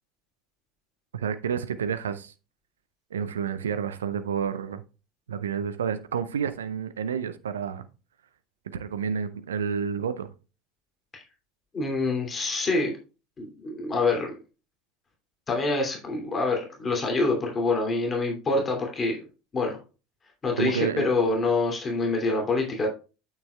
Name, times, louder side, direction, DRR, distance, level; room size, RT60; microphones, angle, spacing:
voice 1, 1.1-2.3 3.1-4.8 5.3-7.9 8.7-10.3 20.6-21.0, right 7 dB, 75° right, 0.6 m, -29 dB
voice 2, 11.7-12.9 13.4-14.3 15.5-19.2 19.5-19.8 20.4-22.9, left 3 dB, 25° left, 2.8 m, -26 dB
8.8 x 7.2 x 2.3 m
figure-of-eight pair, 70°, 0 cm